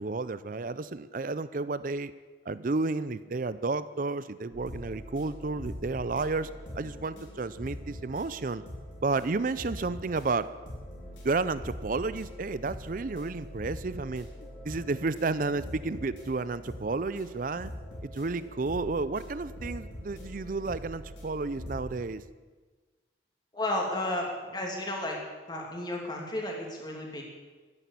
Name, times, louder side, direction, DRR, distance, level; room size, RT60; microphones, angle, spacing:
voice 1, 0.0-2.1 2.5-8.6 9.0-10.5 11.2-14.3 14.6-17.7 18.0-22.2, right 3 dB, 45° right, 15 dB, 0.5 m, -31 dB
sound 1, 4.5-22.0, equal, 85° left, 4.6 m, -43 dB
voice 2, 23.5-25.2 25.5-27.2, left 1 dB, 25° left, 0 dB, 2.7 m, -33 dB
14.0 x 10.0 x 8.4 m, 1.3 s
head